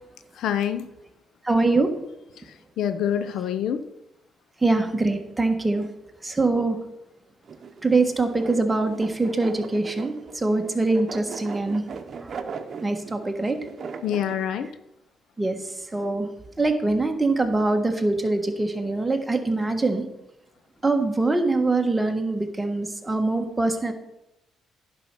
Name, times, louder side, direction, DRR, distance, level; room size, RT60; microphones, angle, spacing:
voice 1, 0.4-0.9 2.8-3.9 14.0-14.7, left 9 dB, 80° left, 11 dB, 0.6 m, -26 dB
voice 2, 1.4-1.9 4.6-5.9 6.2-6.8 7.8-11.8 12.2-12.3 12.8-13.6 15.4-16.3 16.6-20.0 20.8-23.9, right 2 dB, 15° right, 4 dB, 1.5 m, -23 dB
sound 1, 7.4-14.3, right 5 dB, 50° right, 0.9 m, -39 dB
10.5 x 5.6 x 6.1 m, 0.88 s
cardioid pair, 90°, 0 cm